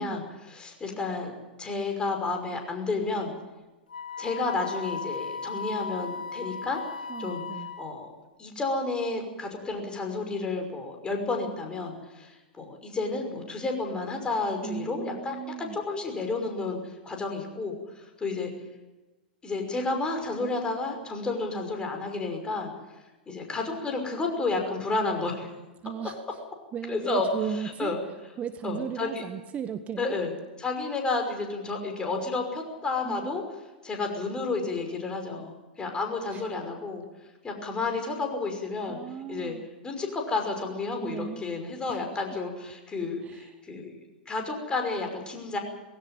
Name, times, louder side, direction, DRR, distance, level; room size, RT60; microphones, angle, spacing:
voice 1, 0.0-1.3 1.6-3.3 4.2-6.8 7.2-7.4 7.8-8.1 8.4-16.8 17.0-18.5 19.4-22.7 23.3-25.5 26.9-27.3 27.5-28.0 28.6-29.2 30.0-30.3 30.6-33.4 33.8-37.0 37.4-39.0 39.3-39.6 39.8-43.9 44.3-45.6, left 3 dB, 15° left, 3 dB, 5.8 m, -31 dB
Wind instrument woodwind instrument, 3.9-8.1, left 5 dB, 70° left, 3.5 m, -36 dB
voice 2, 7.1-7.7 14.6-15.8 25.8-26.4 26.7-27.9 28.4-30.1 33.0-33.3 36.3-36.4 37.9-38.1 38.9-39.7 41.0-41.5 41.9-42.4 43.2-43.5, right 8 dB, 25° right, 10 dB, 1.2 m, -36 dB
20.0 x 17.0 x 9.2 m, 1.1 s
figure-of-eight pair, 95°, 5 cm